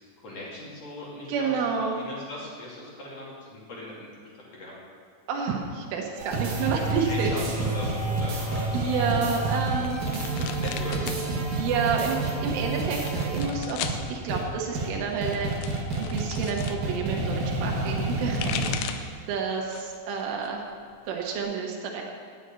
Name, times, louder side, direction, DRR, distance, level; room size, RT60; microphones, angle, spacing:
voice 1, 0.2-4.1 4.5-4.7 7.0-9.0 10.5-11.2, left 1 dB, 40° left, -5 dB, 3.0 m, -39 dB
voice 2, 1.3-2.0 5.3-7.3 8.7-10.0 10.3-10.5 11.5-20.6 21.1-22.0, right 5 dB, 90° right, 0 dB, 3.8 m, -30 dB
sound 1, 6.2-13.5 13.8-14.0 14.3-14.4 14.7-14.9 15.2-18.7, right 2 dB, 55° right, 2.6 m, -29 dB
sound 2, 9.5-11.2 11.5-12.2 12.9-14.0 15.0-16.8 18.1-19.2 19.6-20.1 20.4-21.4, left 9 dB, 90° left, 3.2 m, -37 dB
10.0 x 7.9 x 9.1 m, 2.1 s
omnidirectional pair, 5.6 m